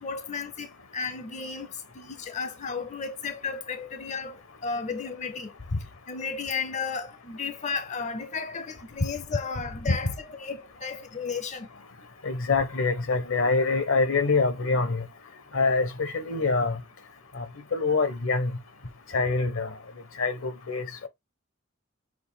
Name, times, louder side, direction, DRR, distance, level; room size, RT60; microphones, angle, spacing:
voice 1, 0.0-5.5 6.1-11.7, left 5 dB, 35° left, 0.5 m, -34 dB
voice 2, 12.2-15.0 15.5-16.8 17.3-17.4 17.7-18.5 19.1-19.7 20.2-21.1, left 3 dB, 75° left, 1.0 m, -25 dB
6.2 x 2.5 x 3.4 m
head